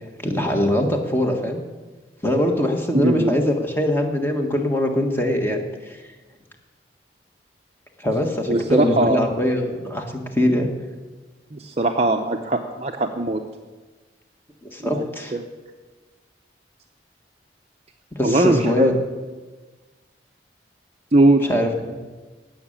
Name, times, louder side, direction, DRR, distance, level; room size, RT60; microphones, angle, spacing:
voice 1, 0.0-1.6 2.2-6.1 8.0-10.0 10.3-10.7 14.6-15.3 18.1-18.9 21.5-21.7, left 1 dB, 10° left, 3 dB, 1.5 m, -22 dB
voice 2, 2.9-3.3 8.5-9.3 11.5-13.4 14.9-15.0 15.3-15.4 18.2-18.9 21.1-21.4, right 2 dB, 35° right, 3 dB, 0.7 m, -19 dB
17.0 x 6.5 x 8.8 m, 1.3 s
head